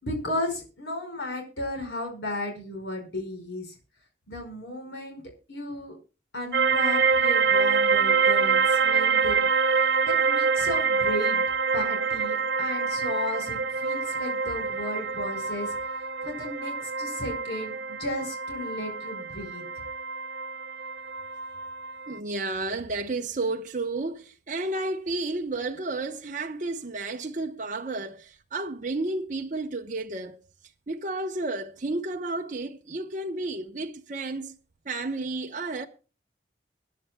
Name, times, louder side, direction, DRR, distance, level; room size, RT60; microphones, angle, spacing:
voice 1, 0.0-3.7 4.3-5.2 5.5-6.0 6.3-11.4 11.7-15.8 16.2-19.6, left 1 dB, 65° left, 5.1 m, -34 dB
sound 1, 6.5-22.2, right 5 dB, 70° right, 0.6 m, -26 dB
voice 2, 22.1-30.4 30.9-34.5 34.9-35.9, right 2 dB, 45° right, 0.9 m, -32 dB
24.5 x 10.5 x 2.2 m
head